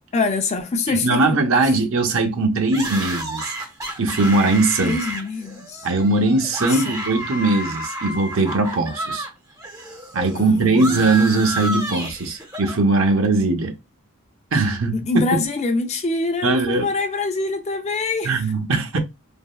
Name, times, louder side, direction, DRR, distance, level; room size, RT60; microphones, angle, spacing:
voice 1, 0.1-1.4 4.8-5.9 6.7-7.0 10.3-11.1 14.9-18.4, left 3 dB, 30° left, 0.4 m, -25 dB
voice 2, 0.9-3.5 4.0-5.0 5.8-9.3 10.1-13.7 14.5-15.0 16.4-16.9 18.2-19.0, right 3 dB, 70° right, 0.7 m, -20 dB
sound 1, 2.7-9.3 9.6-12.8, right 1 dB, 15° right, 0.6 m, -31 dB
3.4 x 2.0 x 2.2 m
head